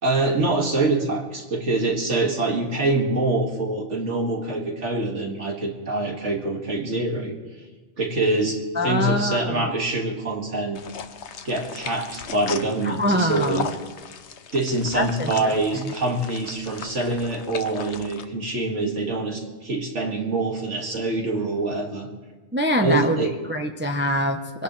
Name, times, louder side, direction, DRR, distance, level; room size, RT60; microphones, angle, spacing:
voice 1, 0.0-7.4 8.0-10.8 11.4-13.7 14.5-22.1 22.8-23.4, right 2 dB, 75° right, 1 dB, 2.3 m, -25 dB
voice 2, 8.8-9.7 12.8-13.7 14.9-15.8 22.5-23.2 23.5-24.6, equal, 10° right, 4 dB, 0.6 m, -24 dB
sound 1, 10.7-18.2, left 6 dB, 70° left, 1.1 m, -37 dB
24.5 x 17.0 x 3.2 m, 1.3 s
omnidirectional pair, 1.2 m